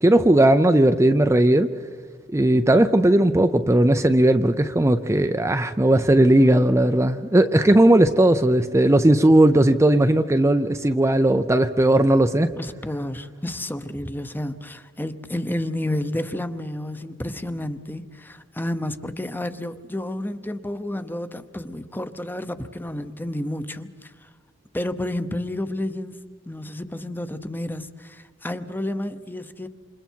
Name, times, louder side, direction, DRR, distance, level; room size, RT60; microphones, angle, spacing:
voice 1, 0.0-1.7 2.3-12.5, right 1 dB, 15° right, 0.5 m, -17 dB
voice 2, 12.6-24.3 24.7-29.7, left 1 dB, 10° left, 0.9 m, -31 dB
28.5 x 27.0 x 4.6 m
head